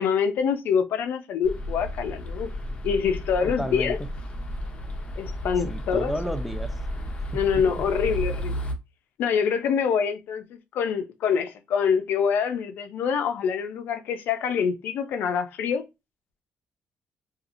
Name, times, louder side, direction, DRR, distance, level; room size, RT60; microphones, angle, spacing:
voice 1, 0.0-2.5 2.8-4.0 5.2-6.1 7.3-8.6 9.2-15.9, left 7 dB, 75° left, 0.4 m, -25 dB
sound 1, 1.4-8.7, equal, 35° left, 0.7 m, -33 dB
voice 2, 3.4-4.1 5.7-6.7 7.3-7.9, equal, ahead, 0.3 m, -33 dB
2.8 x 2.3 x 2.5 m
cardioid pair, 110°, 3 cm